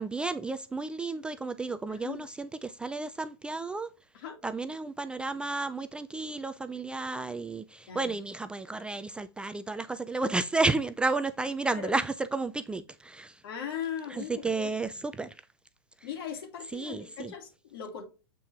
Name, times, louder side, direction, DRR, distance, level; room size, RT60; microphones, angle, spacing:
voice 1, 0.0-3.9 4.4-13.4 14.1-15.4 16.0-16.1 16.7-17.3, right 3 dB, 5° right, 0.3 m, -32 dB
voice 2, 1.9-2.3 4.1-4.4 7.9-8.1 11.7-12.0 13.4-14.7 16.0-18.0, left 8 dB, 65° left, 2.6 m, -39 dB
7.6 x 4.4 x 3.5 m
hypercardioid pair, 135°, 13 cm